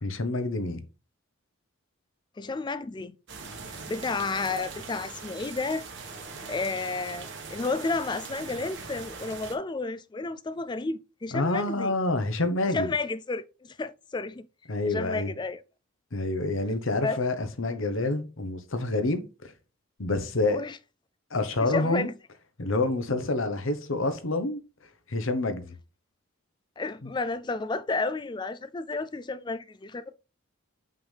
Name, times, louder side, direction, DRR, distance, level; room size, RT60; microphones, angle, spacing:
voice 1, 0.0-0.8 11.3-12.9 14.7-15.3 16.1-19.5 20.0-20.6 21.3-22.1 22.6-24.6 25.1-25.7 27.0-27.1, left 2 dB, 70° left, 1.1 m, -28 dB
voice 2, 2.4-3.2 3.9-5.9 6.5-12.0 12.7-14.5 14.9-15.6 17.0-17.2 20.5-20.8 21.6-22.1 26.8-30.1, left 3 dB, 20° left, 0.3 m, -31 dB
sound 1, 3.3-9.5, right 4 dB, 55° right, 1.5 m, -41 dB
7.4 x 5.7 x 3.4 m
head